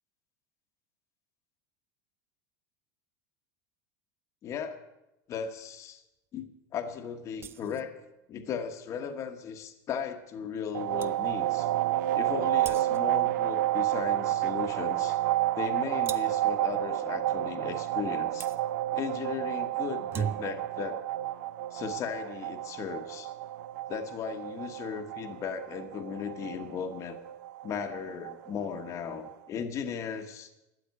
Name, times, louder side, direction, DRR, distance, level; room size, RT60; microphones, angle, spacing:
voice 1, 4.4-4.8 5.3-6.0 6.3-6.4 6.7-8.0 8.3-11.7 12.1-15.2 15.5-18.5 18.9-21.0 21.7-23.3 23.9-27.2 27.6-30.5, left 7 dB, 30° left, 6 dB, 1.2 m, -36 dB
sound 1, 7.4-7.9 10.6-10.7 11.0-11.2 12.6-13.2 16.1-16.5 18.4-18.6 19.9-20.7, right 7 dB, 25° right, 0.5 m, -38 dB
sound 2, 10.7-29.3, right 15 dB, 75° right, 0.7 m, -31 dB
13.0 x 8.4 x 9.4 m, 0.94 s
supercardioid pair, 155°, 10 cm